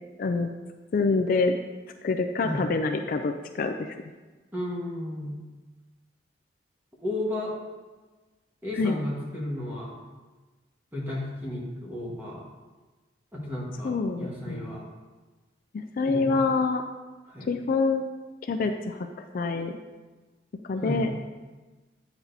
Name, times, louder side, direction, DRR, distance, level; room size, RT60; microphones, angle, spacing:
voice 1, 0.2-0.5 0.9-1.5 2.0-4.0 8.8-9.0 13.8-14.8 15.7-16.8 17.5-18.1 18.4-19.1 19.3-19.8 20.7-21.1, left 4 dB, 50° left, 5 dB, 0.3 m, -26 dB
voice 2, 4.5-5.4 7.0-7.5 8.6-9.9 10.9-12.4 13.3-14.8 16.0-16.4 17.3-17.5 20.8-21.0, left 1 dB, 10° right, -5 dB, 1.3 m, -33 dB
8.5 x 6.0 x 2.7 m, 1.3 s
head